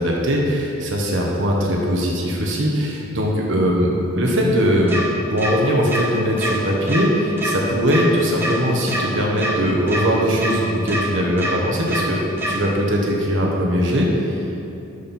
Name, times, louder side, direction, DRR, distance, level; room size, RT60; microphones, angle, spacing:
voice 1, 0.0-12.2 12.5-14.6, equal, 60° right, -2 dB, 1.2 m, -20 dB
sound 1, 4.9-5.0 5.4-5.5 5.9-6.0 6.4-6.5 6.9-7.0 7.4-7.5 7.9-8.0 8.4-8.5 8.9-9.0 9.4-9.5 9.9-10.0 10.4-10.5 10.9-11.0 11.4-11.5 11.9-12.0 12.4-12.5, right 1 dB, 10° right, 1.3 m, -24 dB
12.0 x 4.4 x 5.4 m, 2.9 s
head